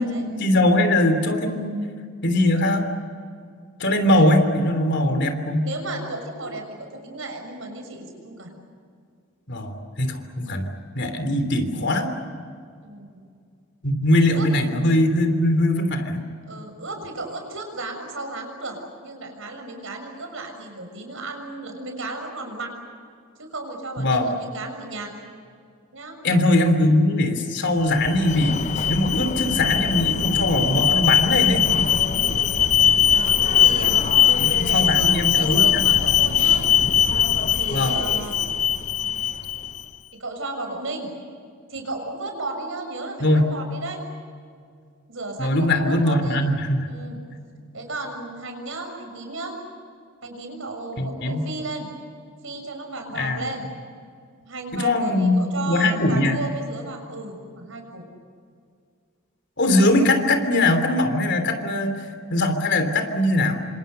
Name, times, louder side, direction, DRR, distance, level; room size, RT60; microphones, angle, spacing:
voice 1, 0.0-1.8 2.2-2.9 3.8-5.7 9.5-10.7 10.9-12.1 13.8-16.2 24.0-24.3 26.2-28.6 28.9-31.7 34.4-35.8 37.7-38.0 43.2-43.5 45.4-46.9 51.0-51.5 53.1-53.5 54.7-56.4 59.6-62.0 62.3-63.6, left 1 dB, 55° left, 7 dB, 3.3 m, -21 dB
voice 2, 5.6-8.5 12.8-13.2 14.3-14.5 16.5-22.7 23.4-25.1 25.9-26.2 32.1-32.6 33.1-34.1 34.7-36.7 37.6-38.5 40.1-41.1 41.7-44.0 45.1-46.4 46.9-47.2 47.7-49.6 50.2-51.9 52.4-53.6 54.4-58.0, right 2 dB, 65° right, 4 dB, 6.6 m, -34 dB
Alarm, 27.8-39.8, left 8 dB, 35° left, 0.6 m, -20 dB
28.5 x 26.5 x 6.8 m, 2.2 s
head